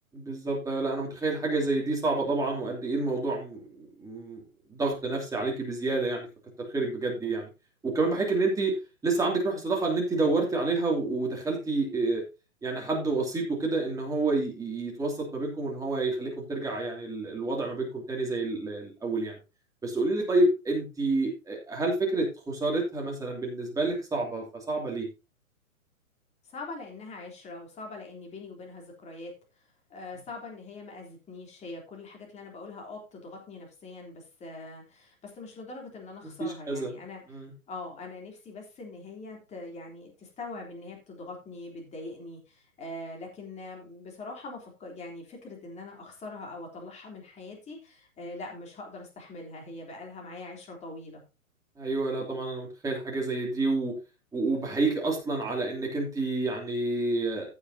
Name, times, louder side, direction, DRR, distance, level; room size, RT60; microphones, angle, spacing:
voice 1, 0.1-4.4 4.7-6.3 6.6-7.5 7.8-8.7 9.0-12.2 12.6-19.4 19.8-25.1 36.4-36.9 37.3-37.5 51.8-53.9 54.3-57.5, right 3 dB, 10° right, -1 dB, 2.8 m, -29 dB
voice 2, 26.5-29.3 29.9-37.2 37.7-51.2, left 2 dB, 15° left, 0 dB, 3.4 m, -42 dB
15.5 x 7.2 x 2.8 m, 0.28 s
hypercardioid pair, 140°, 42 cm